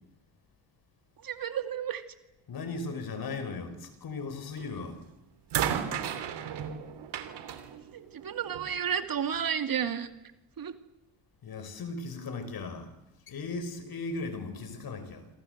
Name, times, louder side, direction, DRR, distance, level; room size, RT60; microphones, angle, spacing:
voice 1, 1.2-2.0 7.9-10.1 10.6-10.7, right 8 dB, 50° right, 2.5 m, -32 dB
voice 2, 2.5-5.0 11.4-12.9 13.3-15.3, left 3 dB, 55° left, 5.3 m, -37 dB
sound 1, 4.6-4.9 5.5-8.8 9.8-9.9, right 9 dB, 70° right, 3.1 m, -34 dB
27.0 x 25.5 x 8.1 m
cardioid pair, 90°, 43 cm